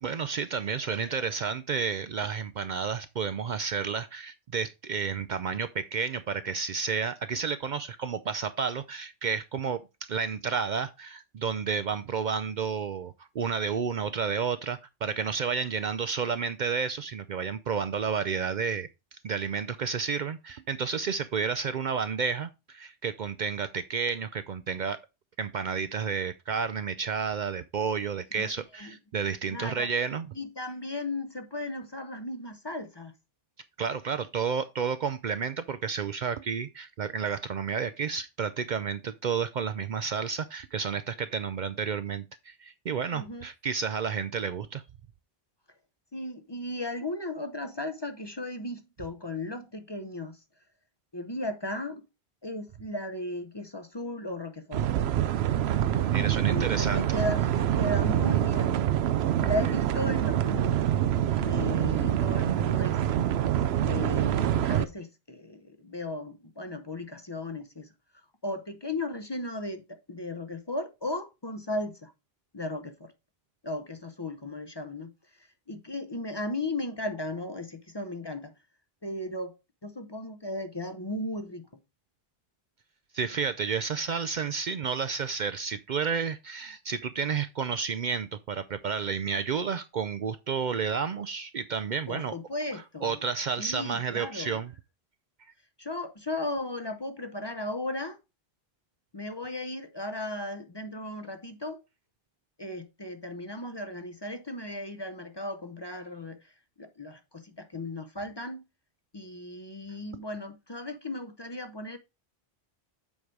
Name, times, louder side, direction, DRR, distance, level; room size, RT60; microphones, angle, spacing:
voice 1, 0.0-25.0 25.4-30.4 33.8-44.8 56.0-57.0 83.1-92.3 92.7-94.7, right 6 dB, 55° right, 0.6 m, -31 dB
voice 2, 0.9-1.3 28.3-28.5 28.8-29.0 29.5-29.9 30.4-33.1 43.1-43.5 46.1-50.4 51.1-52.0 52.4-54.8 56.5-58.8 59.4-60.8 61.4-63.0 63.8-67.9 68.4-72.1 72.5-73.1 73.6-75.1 75.4-78.5 79.0-79.5 79.8-81.6 92.1-93.3 93.6-94.6 95.8-98.2 99.1-101.8 102.6-106.5 106.8-108.6 109.1-112.0, left 1 dB, 30° left, 0.7 m, -36 dB
sound 1, 54.7-64.8, right 11 dB, 90° right, 0.8 m, -26 dB
7.3 x 4.9 x 4.5 m
omnidirectional pair, 1.0 m